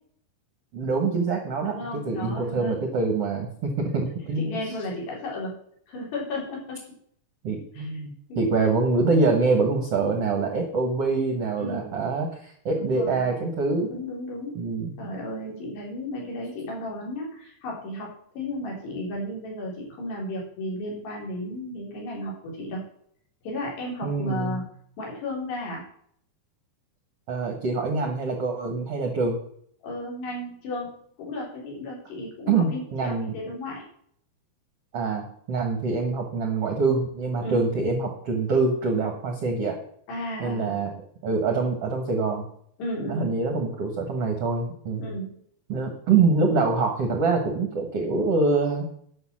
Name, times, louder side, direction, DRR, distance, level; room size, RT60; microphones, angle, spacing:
voice 1, 0.7-4.6 7.4-13.9 14.5-14.9 24.0-24.6 27.3-29.4 32.5-33.3 34.9-39.8 40.4-40.9 41.2-42.4 43.1-45.0 45.7-48.8, right 4 dB, 65° right, 3 dB, 1.5 m, -25 dB
voice 2, 1.6-2.8 4.4-5.6 5.9-6.9 7.7-8.0 8.3-8.5 11.6-12.0 12.7-13.2 13.9-14.7 15.0-18.1 18.4-22.8 23.4-24.7 25.0-25.8 29.8-33.8 37.4-37.7 40.1-40.9 42.8-43.3 45.0-45.4, left 1 dB, 75° left, -2 dB, 5.7 m, -34 dB
11.0 x 6.2 x 7.4 m, 0.65 s
omnidirectional pair, 4.9 m